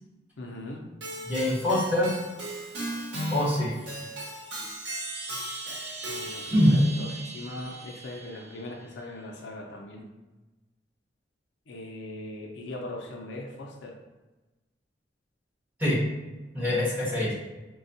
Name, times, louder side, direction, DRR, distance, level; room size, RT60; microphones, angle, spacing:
voice 1, 0.4-0.8 6.1-10.1 11.7-14.0, left 1 dB, 75° left, 0 dB, 0.5 m, -40 dB
Keyboard (musical), 1.0-6.7, right 1 dB, 75° right, 1.0 m, -37 dB
voice 2, 1.3-2.1 3.3-3.7 6.5-6.7 15.8-16.0 16.5-17.3, left 1 dB, 10° right, -11 dB, 1.3 m, -24 dB
Chime, 4.3-9.0, right 3 dB, 40° right, 1.0 m, -41 dB
4.1 x 2.3 x 2.6 m, 1.1 s
head